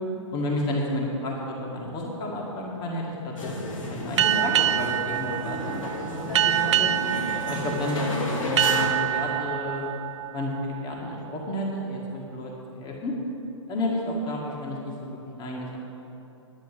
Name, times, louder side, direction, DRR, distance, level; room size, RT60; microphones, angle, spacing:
voice 1, 0.3-6.9 7.5-9.9 10.3-13.1 13.7-15.8, left 1 dB, 25° left, -2 dB, 1.9 m, -31 dB
sound 1, 3.4-8.9, left 2 dB, 80° left, 2.3 m, -32 dB
sound 2, 4.2-11.5, right 12 dB, 60° right, 0.4 m, -26 dB
10.5 x 7.4 x 9.0 m, 3.0 s
hypercardioid pair, 125°, 17 cm